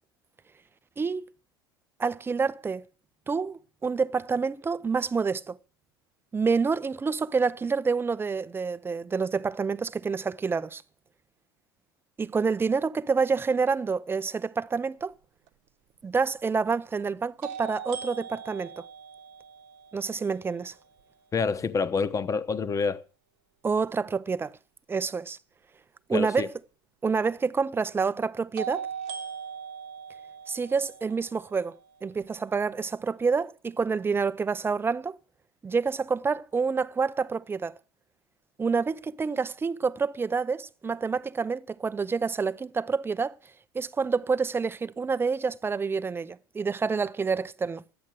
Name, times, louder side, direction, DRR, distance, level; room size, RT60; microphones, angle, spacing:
voice 1, 1.0-1.3 2.0-2.8 3.3-5.6 6.3-10.8 12.2-15.1 16.0-18.8 19.9-20.7 23.6-24.5 24.9-25.4 26.1-26.5 27.0-28.9 30.5-31.7 32.0-35.2 35.6-37.7 38.6-43.4 43.7-47.8, right 5 dB, 20° right, 0.6 m, -28 dB
sound 1, 15.5-15.6 17.4-21.3 28.6-32.6, right 7 dB, 60° right, 1.0 m, -41 dB
voice 2, 21.3-23.0 26.1-26.5, left 5 dB, 25° left, 1.0 m, -27 dB
12.0 x 8.4 x 7.6 m
hypercardioid pair, 80°, 13 cm